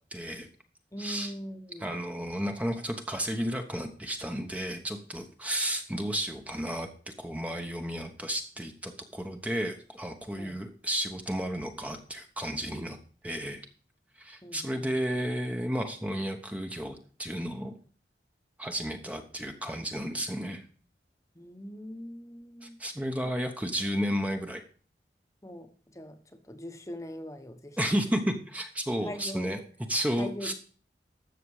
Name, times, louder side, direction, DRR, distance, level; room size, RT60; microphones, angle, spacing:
voice 1, 0.1-0.5 1.0-1.3 1.8-13.0 13.2-13.7 14.2-17.8 18.6-20.6 22.6-24.6 27.8-29.6 29.9-30.5, equal, 10° right, 5 dB, 1.0 m, -32 dB
voice 2, 0.9-2.0 10.3-10.6 14.4-14.9 21.3-22.8 23.2-23.3 25.4-28.0 29.0-29.5 30.1-30.5, equal, 20° left, 7 dB, 1.1 m, -42 dB
13.0 x 7.5 x 4.8 m, 0.42 s
head